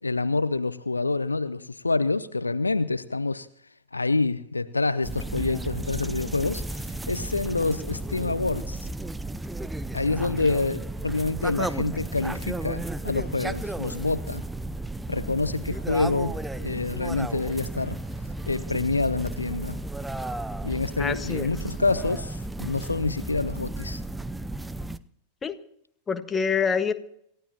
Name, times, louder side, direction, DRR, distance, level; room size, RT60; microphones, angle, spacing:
voice 1, 0.0-3.5 3.9-8.9 9.9-14.5 15.1-18.0 18.5-19.8 20.6-24.0, left 3 dB, 80° left, 0.6 m, -27 dB
sound 1, 5.0-25.0, right 2 dB, 5° right, 0.6 m, -33 dB
voice 2, 21.0-21.5 25.4-25.6 26.1-26.9, left 6 dB, 20° left, 1.4 m, -26 dB
27.5 x 15.0 x 2.9 m
figure-of-eight pair, 90°, 0 cm